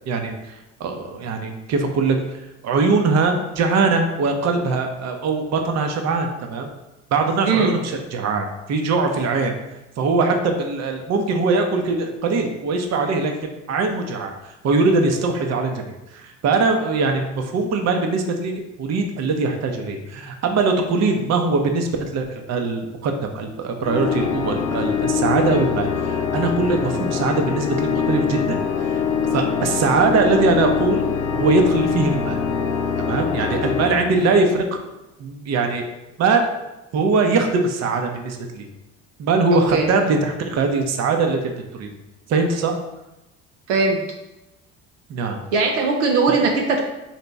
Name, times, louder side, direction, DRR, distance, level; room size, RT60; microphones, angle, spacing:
voice 1, 0.1-0.5 0.8-6.7 7.1-9.5 10.0-14.3 14.6-15.8 16.1-28.4 28.8-29.0 29.3-31.0 31.3-32.4 33.0-34.7 35.2-35.8 36.2-36.5 36.9-38.7 39.2-41.9 42.3-42.7 45.1-45.4, right 3 dB, 50° right, 4 dB, 0.8 m, -21 dB
voice 2, 7.5-7.8 39.5-39.9 43.7-44.0 45.5-46.8, right 4 dB, 85° right, 1 dB, 0.6 m, -19 dB
Organ, 23.8-34.8, left 6 dB, 80° left, 0.7 m, -23 dB
4.1 x 2.9 x 3.4 m, 0.97 s
supercardioid pair, 75°, 33 cm